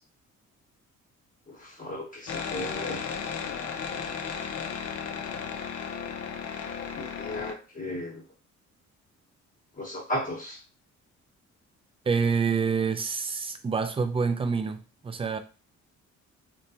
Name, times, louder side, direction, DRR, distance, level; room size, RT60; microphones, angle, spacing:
voice 1, 1.5-3.0 7.0-8.2 9.8-10.6, left 1 dB, 25° left, 0.9 m, -35 dB
sound 1, 2.3-7.5, left 6 dB, 50° left, 0.5 m, -34 dB
voice 2, 12.1-15.4, right 5 dB, 20° right, 0.4 m, -27 dB
3.2 x 2.2 x 2.7 m
cardioid pair, 90°, 30 cm